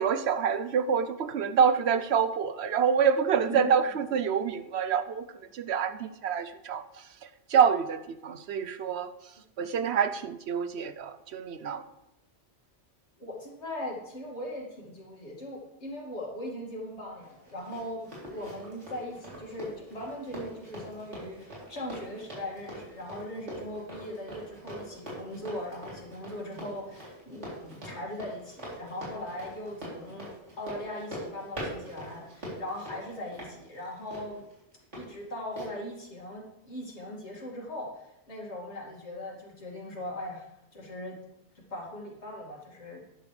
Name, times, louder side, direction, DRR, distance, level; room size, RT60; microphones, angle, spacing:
voice 1, 0.0-5.3 5.5-9.3 9.6-11.8, right 7 dB, 75° right, 0.9 m, -27 dB
voice 2, 13.2-30.3 30.6-34.4 34.9-41.2 41.5-43.0, left 1 dB, 80° left, 2.7 m, -39 dB
Run, 17.2-35.0 35.6-35.7, equal, 90° right, 3.9 m, -43 dB
12.0 x 10.5 x 3.3 m
omnidirectional pair, 1.1 m